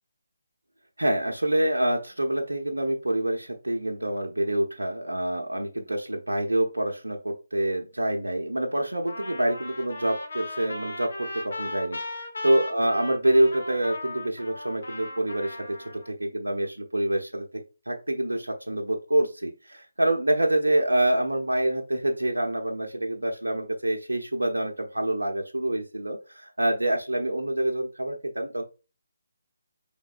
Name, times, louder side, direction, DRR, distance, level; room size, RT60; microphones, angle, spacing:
voice 1, 1.0-28.6, right 1 dB, 90° right, 2 dB, 0.7 m, -26 dB
Trumpet, 9.1-16.1, left 2 dB, 65° left, 1.2 m, -37 dB
5.0 x 3.5 x 2.4 m, 0.32 s
figure-of-eight pair, 150°, 0 cm